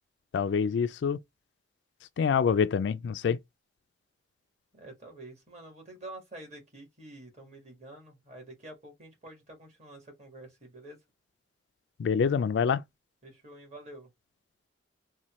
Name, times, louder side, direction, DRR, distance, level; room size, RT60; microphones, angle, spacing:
voice 1, 0.3-1.2 2.2-3.4 12.0-12.8, left 6 dB, 65° left, 0.3 m, -26 dB
voice 2, 4.7-11.0 13.2-14.1, right 1 dB, 35° right, 1.5 m, -48 dB
4.0 x 2.2 x 3.0 m
head